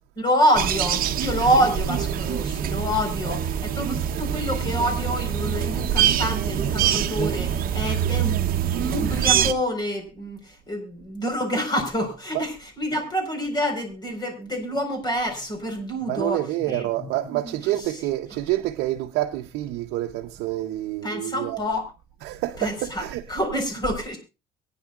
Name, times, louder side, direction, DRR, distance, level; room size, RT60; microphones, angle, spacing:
voice 1, 0.2-18.0 21.0-21.9 22.6-24.2, equal, 25° left, 4.5 m, -27 dB
sound 1, 0.5-9.5, right 9 dB, 60° right, 0.9 m, -24 dB
voice 2, 16.1-21.6 22.2-23.4, right 15 dB, 90° right, 0.7 m, -28 dB
23.5 x 9.7 x 2.4 m
cardioid pair, 110°, 17 cm